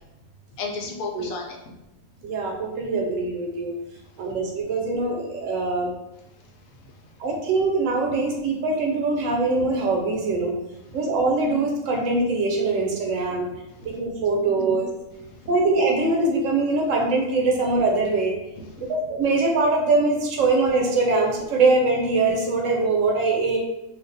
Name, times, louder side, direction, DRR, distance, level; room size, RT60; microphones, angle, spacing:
voice 1, 0.6-1.7 4.3-4.4 6.4-7.0 10.9-11.0 13.7-13.9 14.3-14.9 15.3-15.5 18.6-18.9, left 3 dB, 80° left, 1 dB, 1.0 m, -36 dB
voice 2, 2.2-3.7 4.2-5.9 7.2-10.5 10.9-13.5 13.8-14.9 15.5-18.3 18.8-23.6, right 3 dB, 70° right, 0 dB, 1.0 m, -22 dB
2.5 x 2.3 x 3.9 m, 0.92 s
omnidirectional pair, 1.5 m